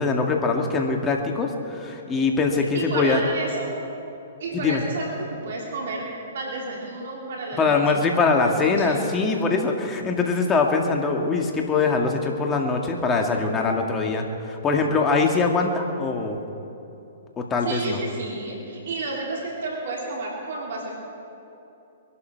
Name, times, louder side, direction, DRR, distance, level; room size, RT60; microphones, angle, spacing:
voice 1, 0.0-3.2 4.6-4.8 7.6-16.4 17.4-18.0, left 4 dB, 20° left, 2 dB, 1.9 m, -22 dB
voice 2, 2.7-3.7 4.4-6.1 6.3-9.0 17.6-20.9, right 2 dB, 65° right, -2 dB, 3.0 m, -31 dB
22.5 x 11.5 x 4.6 m, 2.9 s
hypercardioid pair, 130°, 0 cm